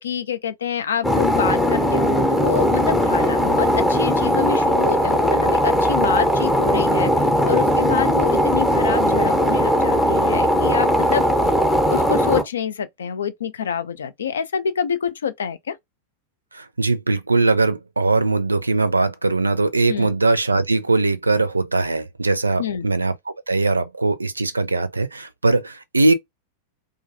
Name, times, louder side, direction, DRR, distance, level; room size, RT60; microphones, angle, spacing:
voice 1, 0.0-11.3 11.9-15.8 19.9-20.1 22.6-22.9, left 8 dB, 65° left, 0.4 m, -26 dB
sound 1, 1.0-12.4, equal, 10° left, 0.7 m, -19 dB
voice 2, 16.5-23.2 23.5-26.1, right 3 dB, 80° right, 0.4 m, -20 dB
2.4 x 2.2 x 2.5 m
figure-of-eight pair, 90°, 0 cm